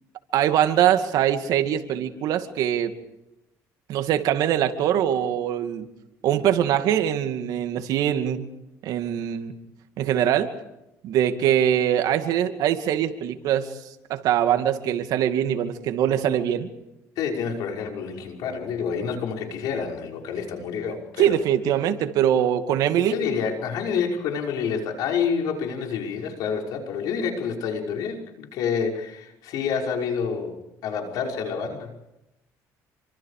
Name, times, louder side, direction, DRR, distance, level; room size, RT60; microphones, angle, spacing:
voice 1, 0.3-2.9 3.9-5.9 6.2-8.5 8.8-9.5 10.0-10.5 11.0-13.7 14.1-16.7 21.2-23.1, right 10 dB, 70° right, 7 dB, 2.4 m, -22 dB
voice 2, 17.2-21.4 23.0-30.6 30.8-31.9, left 6 dB, 75° left, 2 dB, 5.6 m, -28 dB
28.5 x 25.0 x 5.0 m, 0.90 s
cardioid pair, 100°, 7 cm